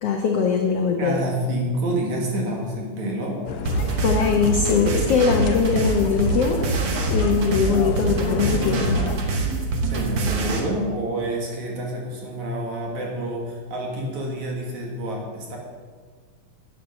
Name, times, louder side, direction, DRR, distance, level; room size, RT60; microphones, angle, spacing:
voice 1, 0.0-1.2 4.0-6.6 7.1-9.0, left 6 dB, 85° left, 2 dB, 1.3 m, -21 dB
voice 2, 1.0-3.4 9.9-15.6, right 1 dB, 60° right, -1 dB, 2.7 m, -28 dB
sound 1, 3.5-9.2, left 5 dB, 65° left, 1.7 m, -31 dB
sound 2, 3.7-10.6, right 3 dB, 80° right, 1.0 m, -25 dB
10.0 x 9.4 x 6.5 m, 1.5 s
omnidirectional pair, 4.2 m